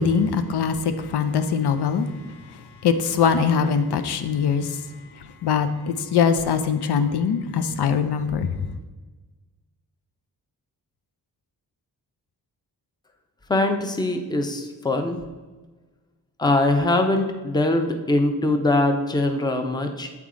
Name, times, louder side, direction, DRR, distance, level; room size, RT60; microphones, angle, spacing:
voice 1, 0.0-2.1 2.8-4.8 5.4-8.6, left 6 dB, 80° left, 9 dB, 0.5 m, -22 dB
voice 2, 13.5-15.2 16.4-20.1, left 2 dB, 10° left, 5 dB, 0.5 m, -22 dB
8.2 x 3.5 x 3.7 m, 1.3 s
wide cardioid pair, 90°, 39 cm